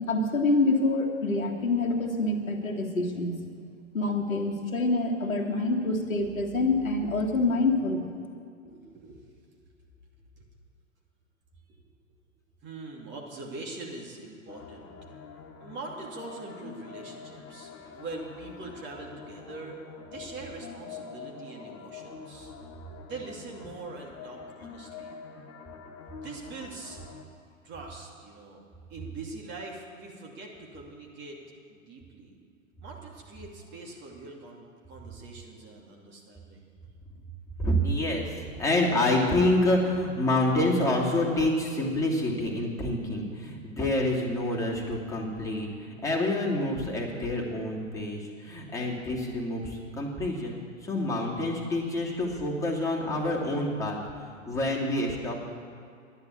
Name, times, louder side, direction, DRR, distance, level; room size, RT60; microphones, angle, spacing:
voice 1, 0.0-3.4 3.9-8.1, left 2 dB, 85° left, 1 dB, 1.9 m, -26 dB
voice 2, 8.6-9.2 10.4-10.5 12.6-14.9 15.6-19.8 20.1-22.5 23.0-25.1 26.1-27.0 27.6-28.6 28.9-31.4 31.7-32.4 32.8-36.6, right 3 dB, 25° right, -1 dB, 2.7 m, -43 dB
sound 1, 14.5-27.2, left 6 dB, 35° left, 1.4 m, -45 dB
voice 3, 37.6-55.4, left 1 dB, 10° left, -4 dB, 2.8 m, -27 dB
11.0 x 10.5 x 8.5 m, 2.3 s
figure-of-eight pair, 105°, 40 cm